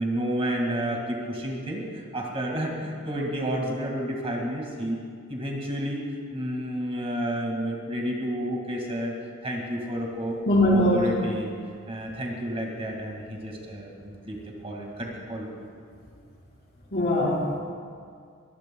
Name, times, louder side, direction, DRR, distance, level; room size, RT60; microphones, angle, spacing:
voice 1, 0.0-5.0 5.3-6.0 6.3-9.2 9.4-10.4 10.7-11.6 11.9-15.5, equal, 25° right, 0 dB, 1.9 m, -30 dB
voice 2, 10.4-11.1 16.9-17.6, left 1 dB, 45° left, -4 dB, 4.3 m, -21 dB
23.0 x 18.5 x 2.3 m, 2.2 s
head